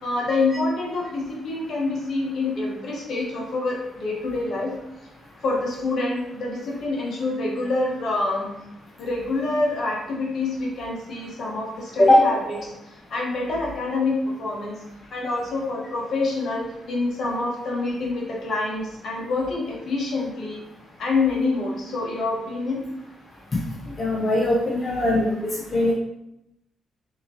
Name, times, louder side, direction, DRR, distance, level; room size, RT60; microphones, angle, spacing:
voice 1, 0.0-4.7 5.4-8.5 9.0-12.7 13.1-14.8 15.1-20.6 21.0-22.8, left 3 dB, 65° left, -3 dB, 1.0 m, -26 dB
voice 2, 24.0-25.3 25.7-25.9, left 1 dB, 40° left, -3 dB, 0.6 m, -19 dB
3.6 x 2.9 x 2.8 m, 0.86 s
hypercardioid pair, 50°, 0 cm